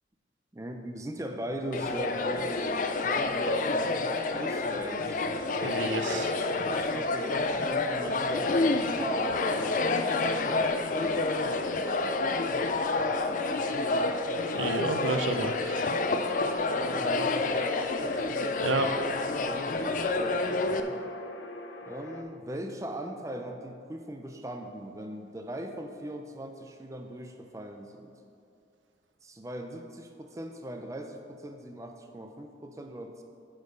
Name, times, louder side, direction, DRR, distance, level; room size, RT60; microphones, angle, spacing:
voice 1, 0.5-5.3 6.1-6.3 6.6-10.0 10.3-12.7 13.1-13.9 16.5-21.0 21.8-28.1 29.2-33.2, right 1 dB, 15° right, 4 dB, 0.4 m, -40 dB
sound 1, 1.7-20.8, left 3 dB, 45° left, 0.4 m, -29 dB
sound 2, 2.2-22.2, left 2 dB, 80° left, 0.7 m, -43 dB
voice 2, 5.6-6.3 14.5-16.0 16.6-16.7 18.6-18.9, right 2 dB, 90° right, 7 dB, 0.7 m, -30 dB
8.2 x 6.2 x 5.3 m, 2.5 s
head